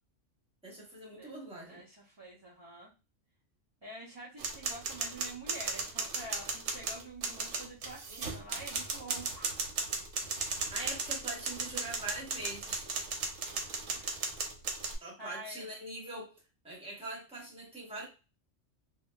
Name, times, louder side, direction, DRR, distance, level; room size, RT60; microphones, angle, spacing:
voice 1, 0.6-1.8 10.7-12.9 15.0-16.3 16.6-18.1, right 2 dB, 5° right, -3 dB, 1.0 m, -43 dB
voice 2, 1.6-2.9 3.8-9.5 13.9-14.2 14.7-15.7, right 2 dB, 25° right, -6 dB, 0.7 m, -47 dB
sound 1, 4.4-15.0, right 4 dB, 85° right, 1.1 m, -36 dB
2.7 x 2.7 x 2.3 m, 0.30 s
omnidirectional pair, 1.3 m